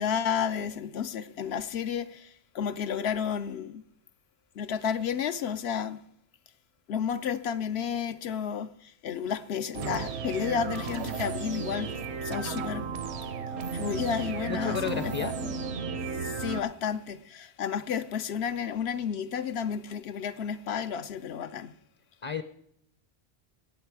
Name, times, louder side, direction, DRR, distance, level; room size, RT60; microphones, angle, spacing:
voice 1, 0.0-3.8 4.6-6.0 6.9-12.9 13.7-15.3 16.2-21.7, left 7 dB, 80° left, 0.9 m, -32 dB
sound 1, 9.7-16.6, right 5 dB, 85° right, 1.1 m, -34 dB
voice 2, 14.5-15.3 22.2-22.4, left 6 dB, 35° left, 0.6 m, -32 dB
17.0 x 8.1 x 4.8 m
omnidirectional pair, 1.1 m